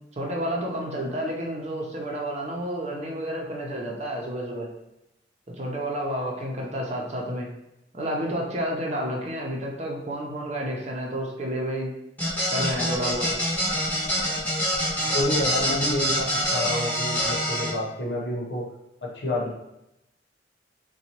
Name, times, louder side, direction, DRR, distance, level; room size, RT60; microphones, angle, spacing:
voice 1, 0.2-4.7 5.5-7.5 7.9-11.9 12.5-13.3, equal, 40° right, -1 dB, 0.6 m, -30 dB
sound 1, 12.2-17.7, equal, 10° left, 0.8 m, -25 dB
voice 2, 15.1-18.7 19.0-19.5, left 1 dB, 90° left, -2 dB, 0.9 m, -28 dB
4.0 x 2.3 x 2.9 m, 0.87 s
head